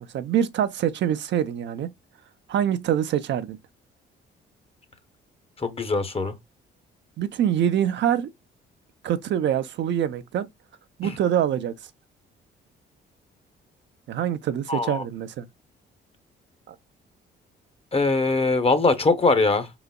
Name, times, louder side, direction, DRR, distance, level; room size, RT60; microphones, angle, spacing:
voice 1, 0.1-1.9 2.5-3.6 7.2-8.3 9.0-10.5 11.0-11.7 14.1-15.5 16.7-16.8, right 10 dB, 65° right, 0.6 m, -25 dB
voice 2, 5.6-6.3 11.0-11.2 14.7-15.0 17.9-19.7, left 3 dB, 30° left, 0.9 m, -22 dB
4.9 x 3.9 x 2.2 m
cardioid pair, 90°, 20 cm